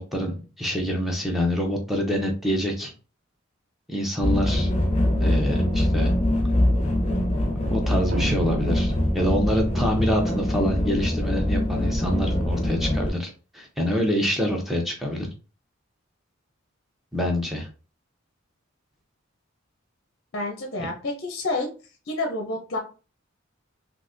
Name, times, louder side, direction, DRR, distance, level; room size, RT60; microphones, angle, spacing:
voice 1, 0.0-2.9 3.9-4.7 5.2-6.1 7.6-15.3 17.1-17.7, equal, ahead, 0 dB, 0.7 m, -26 dB
sound 1, 4.2-13.1, left 1 dB, 35° left, 1.0 m, -23 dB
sound 2, 8.1-9.7, right 2 dB, 55° right, 0.5 m, -34 dB
voice 2, 20.3-21.7 22.1-22.8, left 2 dB, 50° left, 3 dB, 0.6 m, -29 dB
3.8 x 2.8 x 2.5 m, 0.35 s
head